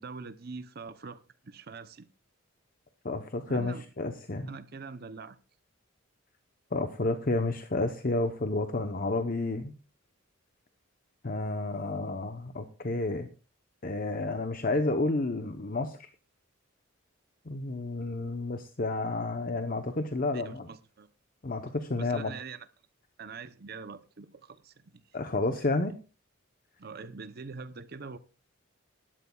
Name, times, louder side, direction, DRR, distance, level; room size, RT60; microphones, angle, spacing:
voice 1, 0.0-2.1 3.5-3.9 4.5-5.4 20.3-21.1 22.0-22.7 23.2-25.2 25.5-26.0 26.8-28.2, right 4 dB, 50° right, 0.7 m, -44 dB
voice 2, 3.0-4.6 6.7-9.7 11.2-13.3 13.8-16.1 17.5-20.7 21.4-22.3 25.1-25.9, left 2 dB, 45° left, 0.8 m, -31 dB
19.5 x 12.5 x 2.3 m
head